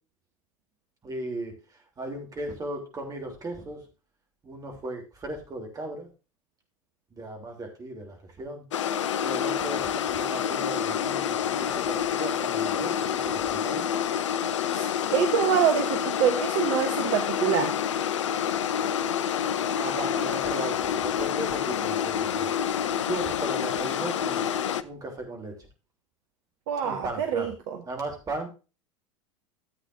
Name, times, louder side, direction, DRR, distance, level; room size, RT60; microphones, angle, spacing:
voice 1, 1.0-1.5 2.0-3.8 4.4-6.1 7.1-8.6 9.2-13.9 19.7-22.5 23.1-24.5 24.8-25.5 26.8-27.5 27.9-28.5, right 2 dB, 20° right, 2 dB, 3.3 m, -36 dB
sound 1, 8.7-24.8, left 9 dB, 65° left, 0.6 m, -28 dB
voice 2, 14.7-17.7 26.7-27.8, right 8 dB, 50° right, 6 dB, 1.1 m, -26 dB
14.0 x 8.3 x 2.7 m, 0.32 s
figure-of-eight pair, 80°, 17 cm